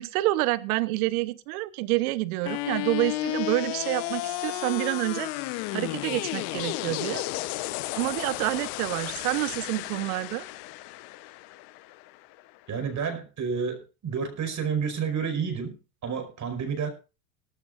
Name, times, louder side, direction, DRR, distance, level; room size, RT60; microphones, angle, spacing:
voice 1, 0.0-5.3 5.7-7.2 8.0-10.4, right 19 dB, 70° right, 16 dB, 1.2 m, -28 dB
sound 1, 2.5-12.5, left 18 dB, 60° left, 1.1 m, -33 dB
voice 2, 12.7-16.9, right 6 dB, 40° right, 7 dB, 5.1 m, -30 dB
18.5 x 14.0 x 2.6 m, 0.33 s
hypercardioid pair, 80°, 44 cm